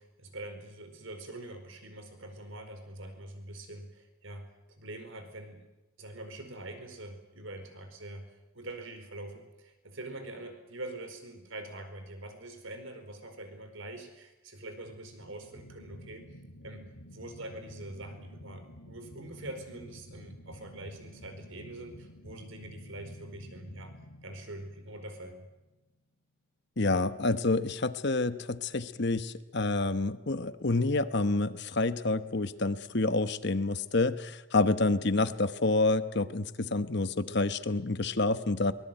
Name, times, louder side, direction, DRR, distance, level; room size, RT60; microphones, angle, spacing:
voice 1, 0.0-4.5 4.8-5.6 6.0-8.3 8.5-16.3 16.6-16.9 17.1-23.9 24.2-25.5, right 1 dB, 65° right, 7 dB, 4.7 m, -44 dB
sound 1, 14.8-25.8, equal, 85° left, 3.1 m, -51 dB
voice 2, 26.8-38.7, left 2 dB, 55° left, 12 dB, 1.1 m, -28 dB
24.0 x 20.5 x 9.0 m, 0.98 s
head